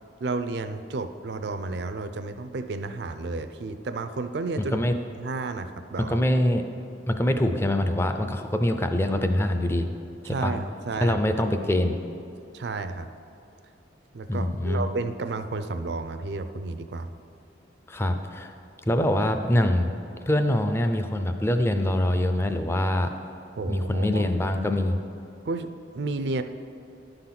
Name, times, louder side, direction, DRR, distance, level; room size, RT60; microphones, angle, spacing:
voice 1, 0.2-4.8 5.2-6.2 10.2-11.2 12.5-13.1 14.1-17.1 23.6-24.3 25.4-26.4, right 3 dB, 65° right, 9 dB, 0.4 m, -32 dB
voice 2, 4.6-4.9 6.1-6.6 7.1-9.9 10.2-10.5 11.0-12.0 14.3-14.8 17.9-18.5 18.9-19.9 20.3-23.1 23.7-25.0, left 1 dB, 15° left, 7 dB, 0.4 m, -24 dB
11.0 x 3.9 x 5.8 m, 2.6 s
head